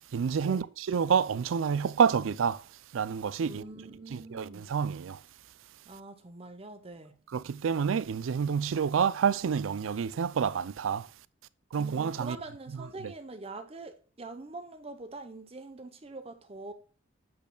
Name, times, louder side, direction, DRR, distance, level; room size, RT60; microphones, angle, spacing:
voice 1, 0.1-2.6 2.9-3.6 4.1-5.2 7.3-11.1 11.7-12.4, right 6 dB, 90° right, 0.4 m, -28 dB
voice 2, 3.4-4.6 5.9-7.2 11.8-16.7, right 2 dB, 30° right, 0.7 m, -44 dB
8.5 x 6.5 x 2.2 m
head